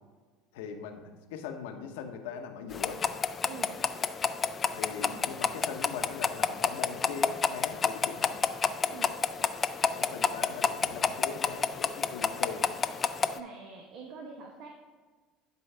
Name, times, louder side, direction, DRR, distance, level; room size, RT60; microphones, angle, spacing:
voice 1, 0.5-3.0 4.7-8.4 9.9-12.7, left 7 dB, 75° left, 5 dB, 0.8 m, -41 dB
sound 1, 2.7-13.4, left 6 dB, 35° left, 0.4 m, -30 dB
voice 2, 3.4-3.8 5.0-5.5 8.9-9.2 13.3-14.7, right 5 dB, 60° right, 2 dB, 0.9 m, -45 dB
11.0 x 4.6 x 3.3 m, 1.4 s
hypercardioid pair, 75°, 0 cm